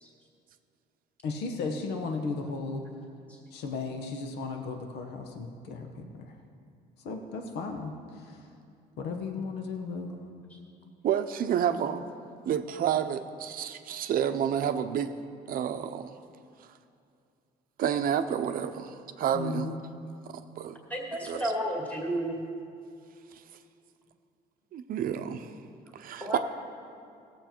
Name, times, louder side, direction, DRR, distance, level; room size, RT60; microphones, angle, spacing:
voice 1, 1.2-2.8 3.5-6.3 7.0-8.4 9.0-10.2 19.3-19.9, left 4 dB, 80° left, 4 dB, 1.2 m, -35 dB
voice 2, 11.0-12.0 12.4-15.1 15.5-16.1 17.8-19.8 20.6-20.8 21.2-21.5 24.7-25.6 25.9-26.4, right 9 dB, 60° right, 9 dB, 0.7 m, -29 dB
voice 3, 20.9-22.4 26.2-26.4, right 1 dB, 10° left, -3 dB, 2.2 m, -32 dB
17.5 x 7.5 x 4.5 m, 2.5 s
cardioid pair, 110°, 17 cm